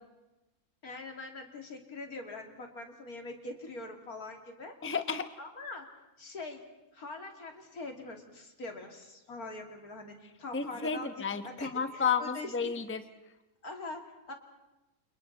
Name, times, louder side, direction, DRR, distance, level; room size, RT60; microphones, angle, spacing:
voice 1, 0.8-4.9 5.4-5.9 6.2-6.6 6.9-11.1 11.4-12.5 13.6-14.3, left 2 dB, 80° left, 3 dB, 3.3 m, -43 dB
voice 2, 4.8-5.3 10.5-13.0, left 6 dB, 10° left, 9 dB, 0.9 m, -32 dB
29.0 x 28.5 x 4.1 m, 1.0 s
omnidirectional pair, 1.5 m